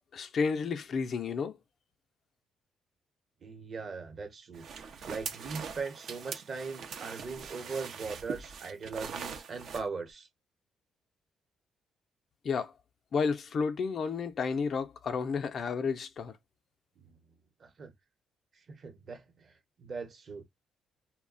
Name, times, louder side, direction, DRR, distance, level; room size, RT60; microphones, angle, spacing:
voice 1, 0.1-1.6 12.4-12.7 13.1-16.3, left 5 dB, 55° left, 0.4 m, -31 dB
voice 2, 3.4-10.3 17.0-17.1 17.6-17.9 18.7-20.4, right 4 dB, 50° right, 0.9 m, -40 dB
sound 1, 4.5-9.8, right 6 dB, 65° right, 0.5 m, -42 dB
2.3 x 2.1 x 3.7 m
cardioid pair, 90°, 0 cm